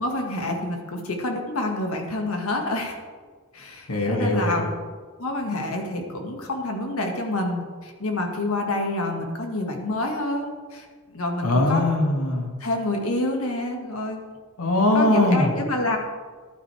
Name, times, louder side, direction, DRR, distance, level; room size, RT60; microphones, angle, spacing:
voice 1, 0.0-3.0 3.5-4.7 5.2-11.8 12.6-14.2 14.9-16.0, left 2 dB, 75° left, 2 dB, 1.9 m, -28 dB
voice 2, 3.9-4.7 11.4-12.5 14.6-15.5, left 1 dB, 90° left, 1 dB, 2.3 m, -21 dB
14.5 x 11.5 x 3.5 m, 1.5 s
head